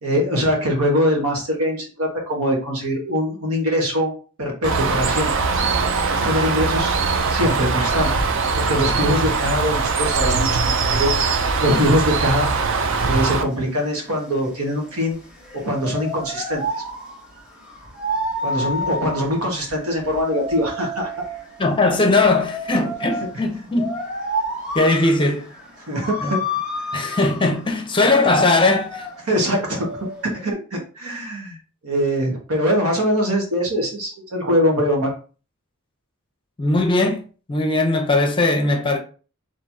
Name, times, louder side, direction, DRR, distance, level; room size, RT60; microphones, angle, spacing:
voice 1, 0.0-4.1 4.4-5.3 6.1-6.9 7.3-8.2 8.5-12.6 13.0-15.2 15.5-16.6 18.4-21.1 25.9-26.4 29.3-29.9 30.4-31.6 31.8-35.1, equal, 85° right, 1.4 m, -22 dB
Bird, 4.6-13.4, right 4 dB, 60° right, 0.5 m, -21 dB
sound 1, 12.6-30.5, left 1 dB, 5° right, 1.6 m, -30 dB
voice 2, 21.6-24.0 24.7-25.5 26.2-26.3 26.9-29.1 36.6-37.2 37.5-39.0, left 2 dB, 25° left, 0.7 m, -19 dB
4.4 x 3.3 x 2.7 m
head